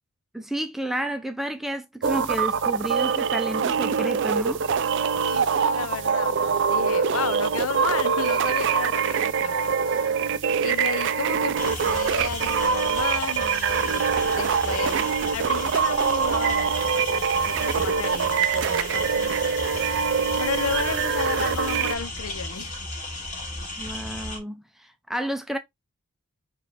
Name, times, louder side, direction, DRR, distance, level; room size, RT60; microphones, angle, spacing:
voice 1, 0.3-4.6 23.8-25.6, right 1 dB, ahead, 0.5 m, -31 dB
sound 1, 2.0-21.9, right 6 dB, 55° right, 0.4 m, -24 dB
voice 2, 5.3-9.6 9.8-10.2 10.6-19.5 20.4-22.9, left 5 dB, 70° left, 0.6 m, -33 dB
sound 2, 11.6-24.4, left 2 dB, 35° left, 2.2 m, -35 dB
4.5 x 3.2 x 3.3 m
head